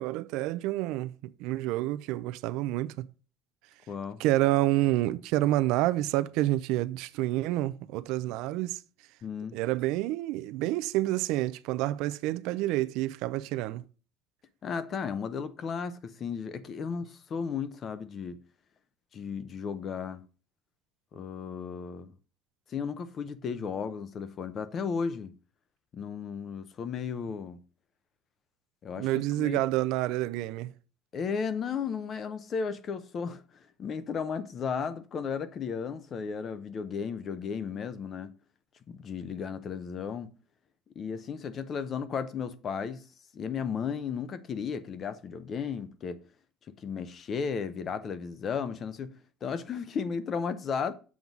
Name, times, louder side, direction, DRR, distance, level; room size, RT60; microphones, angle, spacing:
voice 1, 0.0-3.1 4.2-8.8 9.5-13.8 29.0-30.7, right 16 dB, 70° right, 0.5 m, -28 dB
voice 2, 3.9-4.2 9.2-9.6 14.6-18.4 19.1-20.2 21.1-22.1 22.7-25.3 25.9-27.6 28.8-29.1 29.4-29.6 31.1-38.3 38.9-40.3 41.0-43.0 43.3-46.2 46.7-49.1 49.4-50.9, left 6 dB, 30° left, 0.7 m, -34 dB
7.2 x 4.0 x 6.0 m
cardioid pair, 155°, 0 cm